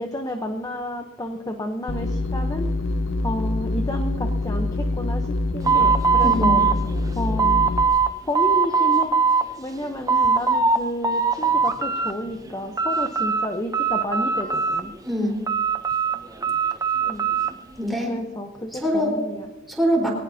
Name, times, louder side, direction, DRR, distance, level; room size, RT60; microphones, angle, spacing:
voice 1, 0.0-2.7 3.2-6.6 7.1-7.7 8.3-9.1 9.6-14.9 17.1-17.3 18.1-19.5, left 1 dB, 20° left, 4 dB, 0.9 m, -31 dB
sound 1, 1.9-7.8, left 2 dB, 85° left, 0.9 m, -25 dB
sound 2, 5.6-8.1 8.3-9.4 9.8-10.8 11.0-12.1 12.5-13.5 13.7-15.0 15.5-17.5, right 5 dB, 20° right, 0.7 m, -21 dB
voice 2, 6.2-6.6 15.1-15.4 17.8-18.1 18.7-19.1 19.7-20.1, equal, ahead, 0 dB, 4.3 m, -23 dB
22.5 x 18.0 x 2.8 m, 1.2 s
head